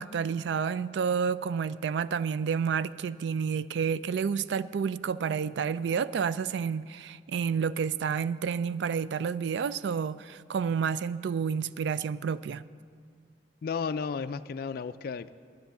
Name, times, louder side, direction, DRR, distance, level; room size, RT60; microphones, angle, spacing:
voice 1, 0.0-12.6, right 6 dB, 65° right, 17 dB, 0.3 m, -30 dB
voice 2, 13.6-15.3, left 5 dB, 55° left, 11 dB, 0.3 m, -33 dB
10.5 x 9.9 x 7.1 m, 2.1 s
head